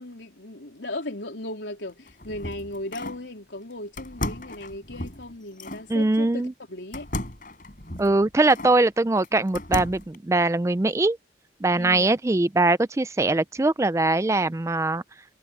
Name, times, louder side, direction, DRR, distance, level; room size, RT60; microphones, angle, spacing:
voice 1, 0.0-7.1 11.7-12.1, left 1 dB, 80° left, 3.6 m, -37 dB
sound 1, 1.9-3.3 4.0-5.9 6.9-8.8 9.2-10.2, left 1 dB, 45° left, 4.9 m, -35 dB
voice 2, 5.9-6.5 8.0-11.2 11.6-15.0, right 2 dB, 15° right, 0.3 m, -22 dB
head